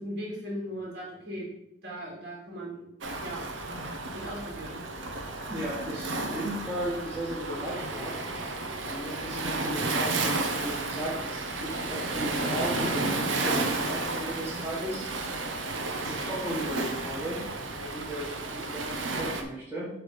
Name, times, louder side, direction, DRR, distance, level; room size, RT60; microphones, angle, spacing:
voice 1, 0.0-1.5 1.8-2.9 3.2-3.4 4.1-4.8, equal, 60° right, -4 dB, 2.9 m, -38 dB
Waves surf, 3.0-19.4, right 2 dB, 75° right, 0.9 m, -32 dB
voice 2, 5.5-8.2 8.9-15.1 16.0-19.9, equal, 15° right, -8 dB, 1.4 m, -35 dB
7.7 x 3.3 x 5.2 m, 0.81 s
head